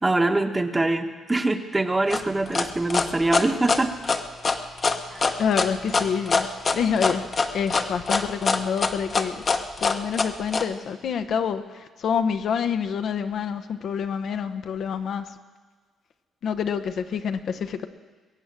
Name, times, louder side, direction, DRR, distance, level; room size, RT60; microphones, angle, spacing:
voice 1, 0.0-3.9 5.1-5.2, right 2 dB, 20° right, 7 dB, 1.1 m, -24 dB
sound 1, 2.1-10.6, left 4 dB, 40° left, 1.0 m, -23 dB
voice 2, 5.4-6.5 6.7-7.3 7.5-9.4 9.8-15.2 16.4-17.9, left 7 dB, 65° left, 8 dB, 0.9 m, -27 dB
21.5 x 8.2 x 7.5 m, 1.4 s
cardioid pair, 90°, 0 cm